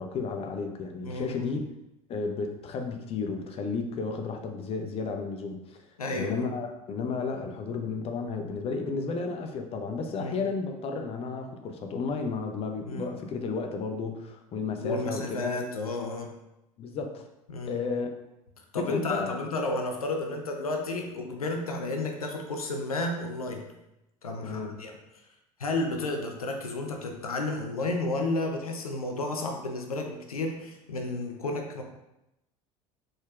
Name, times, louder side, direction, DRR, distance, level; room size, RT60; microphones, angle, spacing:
voice 1, 0.0-1.6 2.1-5.8 6.1-15.5 16.8-17.3 17.6-18.1 18.8-19.4 24.4-24.8, left 4 dB, 35° left, 5 dB, 0.6 m, -32 dB
voice 2, 1.0-1.5 6.0-6.5 10.2-10.4 12.8-13.1 14.8-16.3 17.5-17.8 18.7-23.7 24.2-25.0 25.6-31.8, left 2 dB, 85° left, 3 dB, 0.5 m, -32 dB
4.1 x 3.7 x 2.4 m, 0.90 s
figure-of-eight pair, 70°, 18 cm